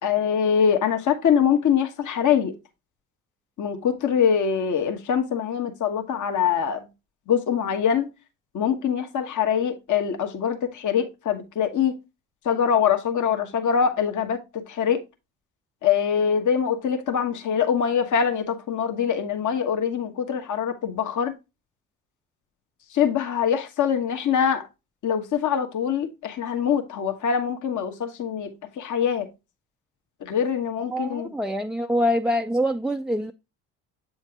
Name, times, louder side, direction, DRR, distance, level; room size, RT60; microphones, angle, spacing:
voice 1, 0.0-2.5 3.6-6.9 7.3-8.1 8.5-11.9 12.4-15.0 15.8-21.3 22.9-24.7 25.0-29.3 30.2-31.3, left 7 dB, 50° left, 1.2 m, -23 dB
voice 2, 30.9-33.3, equal, ahead, 0.4 m, -25 dB
7.6 x 4.4 x 2.8 m
hypercardioid pair, 65°, 39 cm